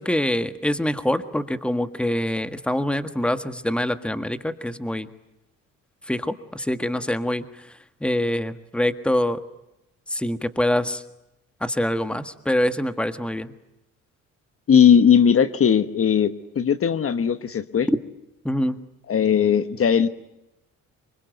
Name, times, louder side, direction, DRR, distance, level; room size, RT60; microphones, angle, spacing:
voice 1, 0.0-5.1 6.1-9.4 10.1-11.0 11.6-13.5 17.9-18.0 18.4-18.8, left 1 dB, 5° left, 10 dB, 1.6 m, -25 dB
voice 2, 14.7-17.9 19.1-20.1, left 8 dB, 50° left, 12 dB, 1.3 m, -18 dB
25.5 x 23.5 x 9.4 m, 0.90 s
cardioid pair, 90°, 30 cm